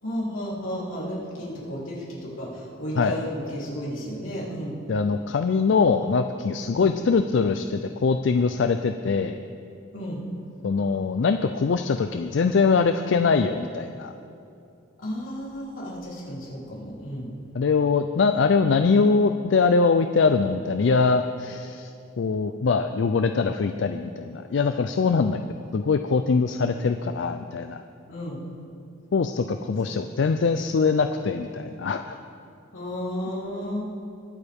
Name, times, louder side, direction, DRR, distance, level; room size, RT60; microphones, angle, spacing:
voice 1, 0.0-4.7 6.7-6.9 9.9-10.2 15.0-17.3 25.2-25.3 28.1-28.4 29.8-30.0 32.7-33.8, equal, 90° left, -6 dB, 3.5 m, -33 dB
voice 2, 4.9-9.4 10.6-14.1 17.5-21.9 22.2-25.4 25.7-27.8 29.1-32.2, left 4 dB, 65° left, 8 dB, 0.4 m, -22 dB
22.0 x 8.3 x 3.6 m, 2.6 s
head